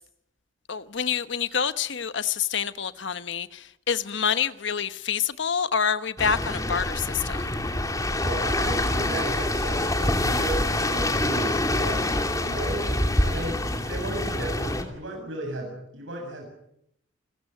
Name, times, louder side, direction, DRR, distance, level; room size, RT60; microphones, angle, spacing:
voice 1, 0.7-3.5 3.9-7.4, left 7 dB, 65° left, 1.1 m, -27 dB
sound 1, 6.2-14.8, left 1 dB, 15° left, 2.8 m, -26 dB
voice 2, 8.2-12.1 12.4-16.4, right 1 dB, 75° right, 7.7 m, -35 dB
30.0 x 16.0 x 9.2 m
head